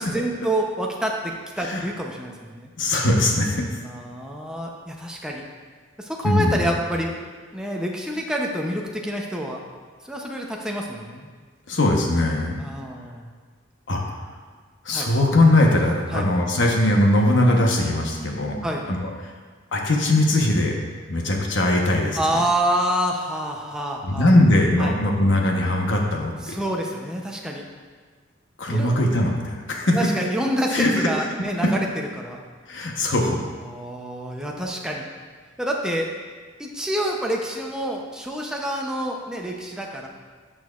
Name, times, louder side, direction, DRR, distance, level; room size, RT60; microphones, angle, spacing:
voice 1, 0.1-2.7 3.8-5.4 6.0-7.1 7.5-9.6 10.1-11.3 12.6-13.3 14.9-15.1 16.1-16.3 18.6-18.8 22.2-24.3 24.8-24.9 26.4-27.6 28.7-28.9 29.9-31.9 32.2-32.4 33.6-35.1 35.6-36.1 36.6-40.1, right 1 dB, 5° right, -1 dB, 0.7 m, -27 dB
voice 2, 2.8-3.6 6.2-6.7 11.7-12.5 13.9-14.0 14.8-18.6 18.9-19.3 19.7-20.8 21.1-22.4 24.0-26.6 28.6-30.0 30.7-31.1 31.6-31.7 32.7-33.4, left 1 dB, 70° left, 0 dB, 1.1 m, -20 dB
11.0 x 6.2 x 2.5 m, 1.5 s
head